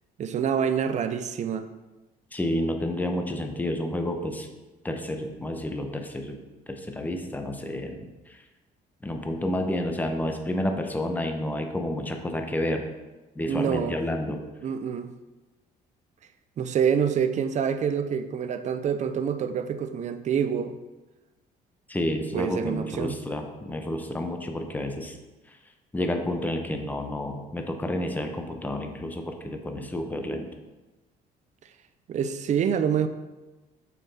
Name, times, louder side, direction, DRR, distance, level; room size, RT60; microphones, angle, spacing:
voice 1, 0.2-1.7 13.4-14.0 14.6-15.1 16.6-20.8 22.3-23.2 32.1-33.1, right 7 dB, 45° right, 10 dB, 0.6 m, -26 dB
voice 2, 2.3-4.5 4.8-6.4 6.7-8.1 9.0-12.9 13.4-14.5 21.9-25.2 25.9-30.5, left 1 dB, 10° left, 4 dB, 0.9 m, -30 dB
7.2 x 5.8 x 4.2 m, 1.1 s
cardioid pair, 110°, 17 cm